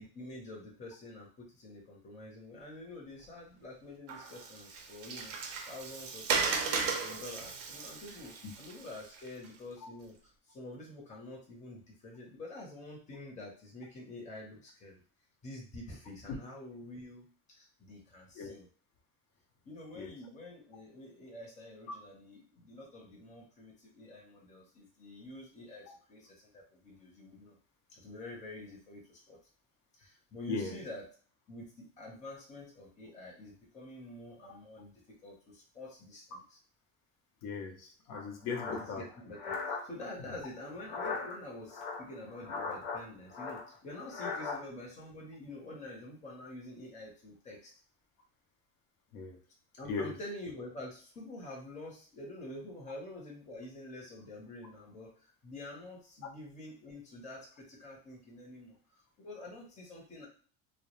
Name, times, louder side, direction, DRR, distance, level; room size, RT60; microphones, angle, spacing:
voice 1, 0.0-5.4 5.7-10.1 10.5-15.0 15.4-18.7 19.6-27.6 27.9-29.4 30.0-31.1 31.5-36.6 38.7-47.7 49.7-58.8 59.2-60.3, left 2 dB, 20° left, -2 dB, 0.8 m, -47 dB
Water, 4.1-9.5, right 5 dB, 40° right, 0.5 m, -36 dB
voice 2, 30.5-30.8 37.4-39.0 49.1-49.4 49.8-50.2, left 4 dB, 55° left, 4 dB, 0.7 m, -38 dB
sound 1, 38.1-39.8 40.7-41.3 41.7-43.0 43.3-44.6, left 4 dB, 90° left, 1.0 m, -38 dB
2.2 x 2.1 x 3.0 m, 0.42 s
supercardioid pair, 125°, 38 cm